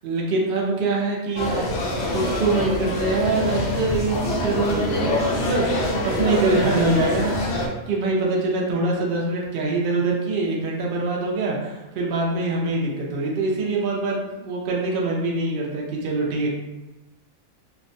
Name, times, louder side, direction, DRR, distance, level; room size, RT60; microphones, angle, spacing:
voice 1, 0.0-1.6 2.1-5.7 6.0-16.5, right 3 dB, 70° right, -2 dB, 0.5 m, -24 dB
sound 1, 1.4-7.7, left 1 dB, 65° left, 0.7 m, -25 dB
2.4 x 2.1 x 2.5 m, 1.1 s
omnidirectional pair, 1.4 m